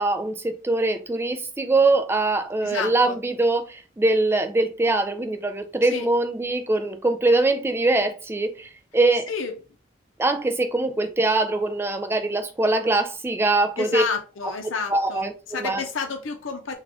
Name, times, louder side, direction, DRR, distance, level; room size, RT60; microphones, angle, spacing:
voice 1, 0.0-9.3 10.2-14.0 14.9-15.8, right 2 dB, 10° right, 0.4 m, -23 dB
voice 2, 2.6-3.2 5.8-6.1 9.3-9.5 13.8-16.8, left 5 dB, 75° left, 0.6 m, -30 dB
3.6 x 2.3 x 3.4 m
head